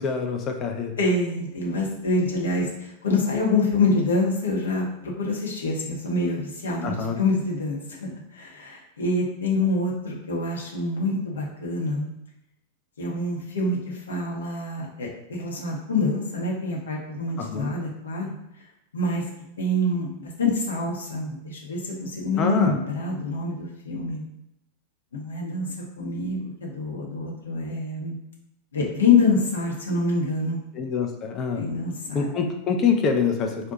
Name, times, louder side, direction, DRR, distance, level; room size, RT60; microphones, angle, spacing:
voice 1, 0.0-0.9 6.8-7.2 17.4-17.7 22.4-22.7 30.8-31.6 32.1-33.7, left 5 dB, 30° left, 4 dB, 0.4 m, -25 dB
voice 2, 1.0-12.1 13.0-18.3 18.9-19.2 19.6-24.2 25.1-28.1 28.7-30.6 31.5-32.3, left 3 dB, 70° left, -2 dB, 0.7 m, -26 dB
2.6 x 2.2 x 3.8 m, 0.82 s
figure-of-eight pair, 90°, 0 cm